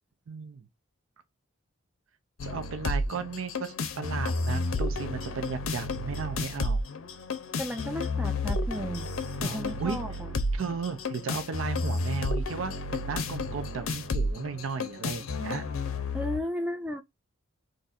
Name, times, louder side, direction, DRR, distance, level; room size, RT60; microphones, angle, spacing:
voice 1, 0.3-0.7 2.4-6.8 9.4-10.1 10.5-15.7, right 5 dB, 75° right, 0.5 m, -35 dB
sound 1, 2.4-16.4, left 2 dB, 85° left, 0.6 m, -31 dB
voice 2, 7.6-9.1 9.4-10.4 16.1-17.0, equal, 5° right, 0.3 m, -34 dB
2.6 x 2.4 x 4.0 m
head